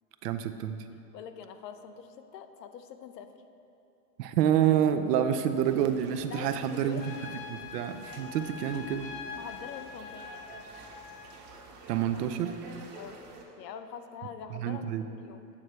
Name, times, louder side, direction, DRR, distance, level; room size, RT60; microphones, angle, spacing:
voice 1, 0.2-0.8 4.2-7.0 7.5-9.1 11.9-12.6 14.5-15.1, right 9 dB, 75° right, 9 dB, 0.6 m, -28 dB
voice 2, 1.1-3.3 6.3-7.4 9.4-10.4 13.0-13.2 13.6-14.9 15.1-15.5, left 7 dB, 85° left, 8 dB, 0.7 m, -44 dB
sound 1, 5.6-13.4, right 3 dB, 50° right, 1.3 m, -50 dB
Trumpet, 7.0-11.3, left 6 dB, 45° left, 0.6 m, -44 dB
8.4 x 3.2 x 6.5 m, 2.7 s
hypercardioid pair, 110°, 48 cm